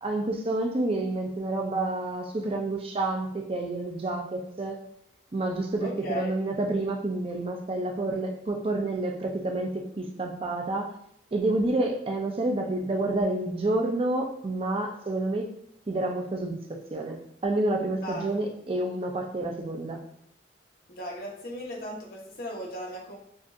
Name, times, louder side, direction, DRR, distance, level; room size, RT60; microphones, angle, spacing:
voice 1, 0.0-4.8 5.3-10.9 11.3-15.5 15.9-20.0, right 2 dB, 30° right, 2 dB, 0.4 m, -29 dB
voice 2, 5.8-6.3 18.0-18.3 20.9-23.2, left 1 dB, 55° left, -2 dB, 1.1 m, -36 dB
6.2 x 2.5 x 2.5 m, 0.71 s
head